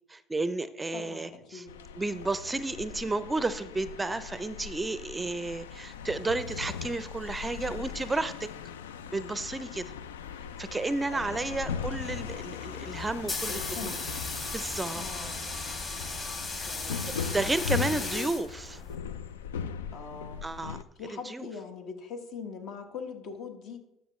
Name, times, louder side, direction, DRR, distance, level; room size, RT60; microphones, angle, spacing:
voice 1, 0.1-1.7 2.0-8.5 9.1-9.9 10.6-13.9 14.5-15.0 16.5-16.9 17.3-18.8 20.4-20.8 21.1-21.5, right 2 dB, 15° right, 14 dB, 0.5 m, -32 dB
voice 2, 0.9-1.7 11.1-11.8 13.5-14.1 14.9-15.4 16.7-18.3 19.9-20.5 21.0-23.8, left 5 dB, 60° left, 5 dB, 1.2 m, -42 dB
sound 1, 1.7-20.8, left 7 dB, 90° left, 0.3 m, -39 dB
sound 2, 13.0-19.0, left 3 dB, 35° left, 2.4 m, -36 dB
12.0 x 5.8 x 3.1 m, 0.88 s
hypercardioid pair, 70°, 0 cm